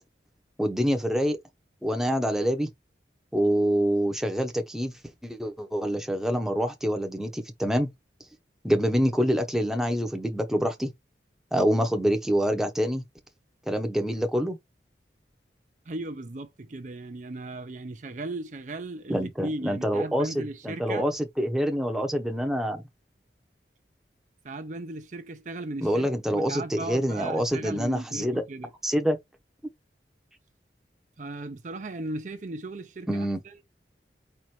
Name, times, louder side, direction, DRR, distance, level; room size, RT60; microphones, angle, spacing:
voice 1, 0.6-1.4 1.8-2.7 3.3-4.9 5.2-7.9 8.6-10.9 11.5-13.0 13.7-14.6 19.1-22.8 25.8-28.4 28.8-29.2 33.1-33.4, equal, 5° right, 0.8 m, -26 dB
voice 2, 15.9-21.0 24.4-28.7 31.2-33.5, right 2 dB, 45° right, 0.5 m, -37 dB
4.4 x 2.5 x 4.7 m
head